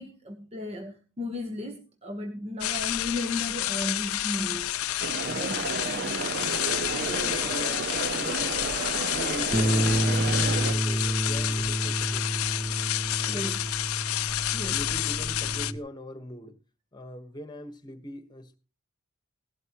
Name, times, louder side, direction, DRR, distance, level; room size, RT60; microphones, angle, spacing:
voice 1, 0.0-4.7 5.3-6.2 7.2-7.4 13.3-13.7 14.5-14.8, left 1 dB, 30° right, 1.3 m, -35 dB
sound 1, 2.6-15.7, left 14 dB, 75° left, 0.5 m, -30 dB
sound 2, 5.0-10.7, right 4 dB, 45° right, 0.6 m, -32 dB
voice 2, 5.2-5.7 6.9-8.7 9.1-12.7 13.2-13.5 14.7-16.6 16.9-18.6, equal, 20° left, 1.5 m, -42 dB
Bass guitar, 9.5-15.8, right 1 dB, 10° right, 0.9 m, -29 dB
17.0 x 12.0 x 3.1 m
head